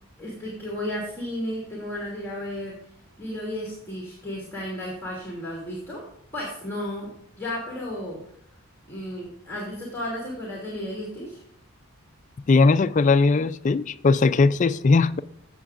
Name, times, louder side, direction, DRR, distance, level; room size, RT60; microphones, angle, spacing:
voice 1, 0.2-2.7 3.2-6.0 6.3-7.1 7.4-8.2 8.9-11.4, left 1 dB, 10° left, 2.6 m, -33 dB
voice 2, 12.5-15.2, left 4 dB, 35° left, 0.3 m, -19 dB
14.5 x 7.8 x 2.5 m
head